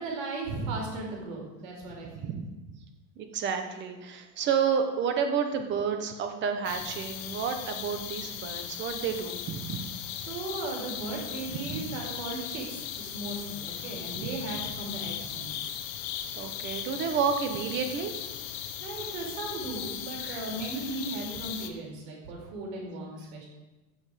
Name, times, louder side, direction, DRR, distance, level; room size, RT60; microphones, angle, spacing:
voice 1, 0.0-2.3 10.3-15.6 16.3-16.4 18.8-23.5, right 2 dB, 60° right, -1 dB, 5.0 m, -37 dB
voice 2, 3.2-9.9 11.5-12.0 14.1-14.3 16.4-18.2 20.2-20.5, right 6 dB, 25° right, 6 dB, 1.1 m, -30 dB
sound 1, 6.6-21.7, left 10 dB, 55° left, 1.3 m, -38 dB
14.5 x 7.2 x 5.2 m, 1.1 s
supercardioid pair, 155°, 47 cm